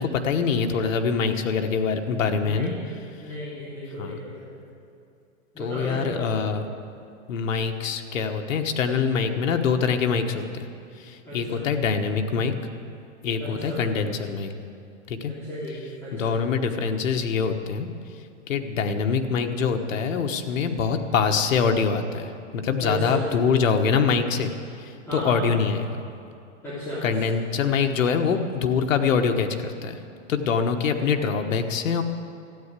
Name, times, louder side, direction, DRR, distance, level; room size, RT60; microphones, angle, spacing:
voice 1, 0.0-2.7 4.0-4.2 5.6-6.6 7.3-10.7 11.0-12.5 13.2-14.5 15.1-15.3 16.1-17.9 18.5-24.5 24.8-25.8 27.0-30.0 30.3-32.0, left 5 dB, 90° left, 6 dB, 1.3 m, -24 dB
voice 2, 2.4-2.9 3.2-4.5 5.5-6.3 11.2-11.6 13.4-13.8 15.3-16.4 22.8-23.2 25.1-25.5 26.6-27.1, equal, 5° left, -13 dB, 3.5 m, -34 dB
13.5 x 9.3 x 8.3 m, 2.5 s
supercardioid pair, 160°, 38 cm